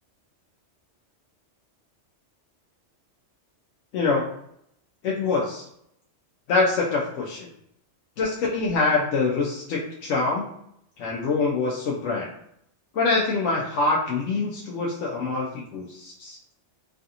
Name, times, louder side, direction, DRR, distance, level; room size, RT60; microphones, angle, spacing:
voice 1, 3.9-4.2 5.0-5.7 6.5-7.5 8.2-10.5 11.0-12.3 12.9-16.4, left 3 dB, 85° left, -3 dB, 0.9 m, -25 dB
3.2 x 2.5 x 2.7 m, 0.74 s
omnidirectional pair, 1.2 m